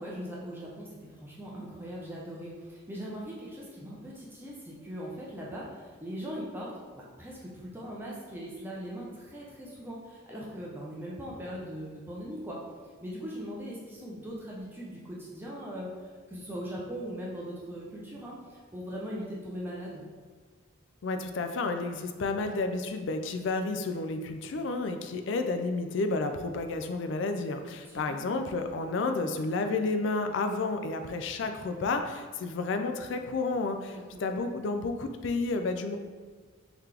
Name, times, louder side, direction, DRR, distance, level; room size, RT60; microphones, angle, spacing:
voice 1, 0.0-12.6 13.0-15.9 16.3-20.0 27.8-28.2 33.9-34.2, equal, 10° right, -5 dB, 0.5 m, -40 dB
voice 2, 21.0-36.0, left 3 dB, 60° left, 6 dB, 0.3 m, -31 dB
3.9 x 2.9 x 3.3 m, 1.5 s
head